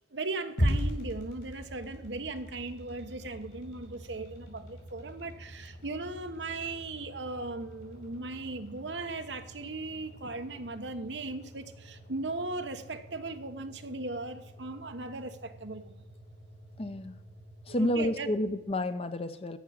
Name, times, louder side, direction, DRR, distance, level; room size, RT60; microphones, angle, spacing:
voice 1, 0.1-16.0 17.7-18.3, right 2 dB, 85° right, 1.1 m, -38 dB
sound 1, 0.6-18.8, equal, 70° left, 5.5 m, -40 dB
voice 2, 16.8-17.2 17.7-19.6, left 1 dB, 35° left, 0.7 m, -30 dB
14.0 x 6.1 x 8.7 m
head